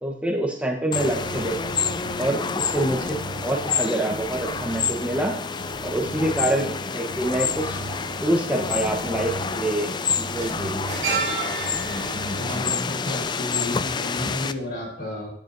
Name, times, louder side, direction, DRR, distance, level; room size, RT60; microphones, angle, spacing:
voice 1, 0.0-5.3 5.8-7.8 8.2-9.9 10.2-10.9, right 1 dB, 5° right, 0 dB, 1.1 m, -26 dB
sound 1, 0.9-14.5, left 6 dB, 25° left, 0.3 m, -28 dB
sound 2, 0.9-12.7, right 2 dB, 80° right, 0.7 m, -38 dB
sound 3, 9.5-9.6 9.8-14.0 14.3-14.5, right 4 dB, 50° right, 4.7 m, -32 dB
voice 2, 12.3-15.3, left 1 dB, 60° left, -2 dB, 4.3 m, -32 dB
13.5 x 9.1 x 2.7 m, 0.62 s
head